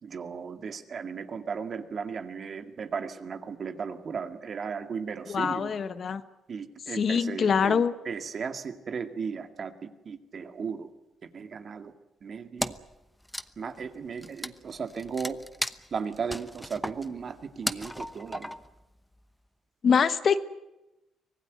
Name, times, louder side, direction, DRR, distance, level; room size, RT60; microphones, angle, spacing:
voice 1, 0.0-5.7 6.5-9.7 10.1-10.9 11.2-11.9 12.2-12.7 13.6-15.4 15.9-18.5, right 6 dB, 50° right, 8 dB, 2.1 m, -36 dB
voice 2, 5.3-6.2 6.9-7.9 19.8-20.4, left 6 dB, 50° left, 12 dB, 1.2 m, -24 dB
Wood, 12.6-13.0 13.2-18.8, left 1 dB, 5° left, 0.9 m, -36 dB
24.5 x 17.5 x 9.5 m, 0.94 s
cardioid pair, 90°, 0 cm